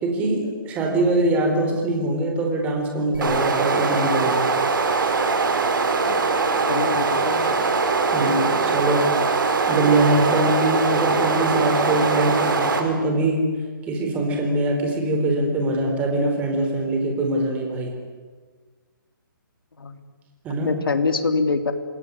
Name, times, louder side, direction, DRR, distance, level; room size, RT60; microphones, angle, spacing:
voice 1, 0.0-4.5 8.1-9.1 9.7-13.5 13.8-17.9 20.4-20.8, right 2 dB, 10° right, 2 dB, 4.3 m, -23 dB
sound 1, 3.1-12.8, right 4 dB, 65° right, 5.6 m, -22 dB
voice 2, 6.7-7.5 19.8-20.0 20.6-21.7, left 4 dB, 90° left, 7 dB, 3.4 m, -24 dB
27.5 x 20.5 x 9.9 m, 1.5 s
hypercardioid pair, 170°, 11 cm